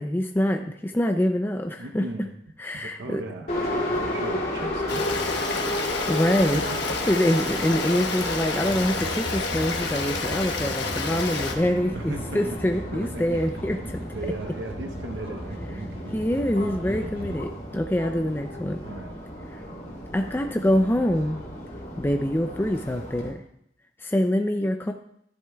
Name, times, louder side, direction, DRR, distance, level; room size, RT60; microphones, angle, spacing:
voice 1, 0.0-2.1 2.6-3.2 6.0-6.6 7.1-14.0 16.1-18.8 20.1-21.4 22.0-23.4 24.0-24.9, left 1 dB, 10° left, 5 dB, 0.4 m, -25 dB
voice 2, 1.8-2.3 2.7-5.7 6.5-7.0 11.9-12.4 12.9-13.3 13.7-13.8 14.1-16.0 18.8-19.1, right 2 dB, 85° right, 4 dB, 0.8 m, -37 dB
Subway metro underground, 3.5-23.3, left 1 dB, 45° left, 3.0 m, -33 dB
Stream, 4.9-11.5, left 4 dB, 70° left, 1.1 m, -30 dB
sound 1, 8.7-17.4, equal, 30° right, 1.1 m, -38 dB
12.5 x 10.5 x 2.3 m, 0.71 s
head